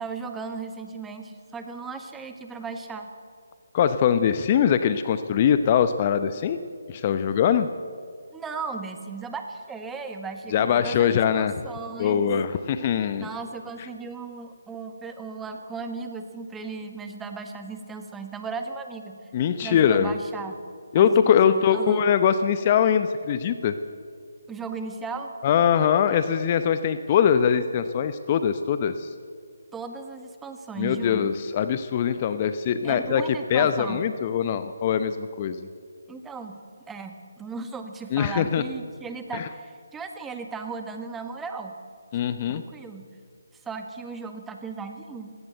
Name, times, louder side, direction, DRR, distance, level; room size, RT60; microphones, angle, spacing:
voice 1, 0.0-3.1 8.3-12.3 13.1-19.2 19.6-20.6 20.9-22.0 24.5-25.3 29.7-31.3 32.8-34.1 36.1-36.6 36.9-41.7 42.5-43.1 43.6-45.3, right 4 dB, 10° right, 6 dB, 1.5 m, -36 dB
voice 2, 3.7-6.6 6.9-7.7 10.5-11.5 12.0-13.3 19.3-20.1 20.9-23.7 25.4-29.1 30.8-33.2 33.5-35.7 38.1-38.6 39.3-39.5 42.1-42.6, left 8 dB, 30° left, 11 dB, 0.8 m, -22 dB
19.5 x 17.0 x 8.0 m, 2.2 s
figure-of-eight pair, 150°, 0 cm